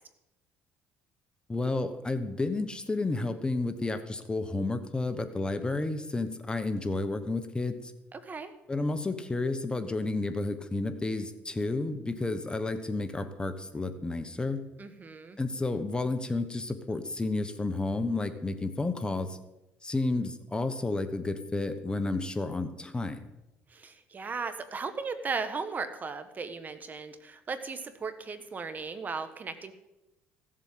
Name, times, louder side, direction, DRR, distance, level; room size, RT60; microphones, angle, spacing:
voice 1, 1.5-7.9 8.7-14.6 15.4-19.4 19.8-23.2, left 2 dB, 15° left, 9 dB, 1.1 m, -31 dB
voice 2, 8.1-8.5 14.8-15.4 23.7-29.7, right 4 dB, 35° right, 10 dB, 1.4 m, -36 dB
16.0 x 7.7 x 7.7 m, 0.95 s
cardioid pair, 100°, 5 cm